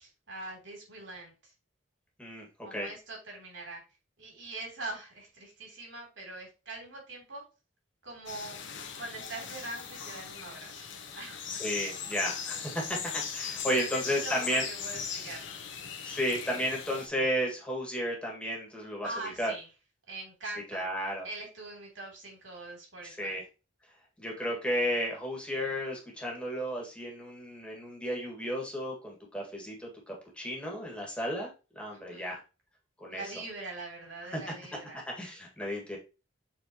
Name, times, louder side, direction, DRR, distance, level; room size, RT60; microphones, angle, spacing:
voice 1, 0.0-1.5 2.6-3.8 4.2-7.4 8.0-8.6 9.0-10.9 11.1-11.8 13.7-15.6 19.0-19.7 20.1-20.9 21.2-23.4 31.9-32.4 33.1-35.0, right 2 dB, 90° right, 0 dB, 3.4 m, -43 dB
voice 2, 2.2-2.9 11.5-14.6 16.0-19.1 19.4-19.5 20.7-21.3 23.0-23.4 24.2-31.5 31.8-32.4 33.0-33.2 35.2-36.0, equal, 5° left, -1 dB, 2.1 m, -33 dB
sound 1, 8.3-17.1, left 7 dB, 75° left, 1.2 m, -39 dB
7.5 x 4.3 x 3.1 m, 0.30 s
head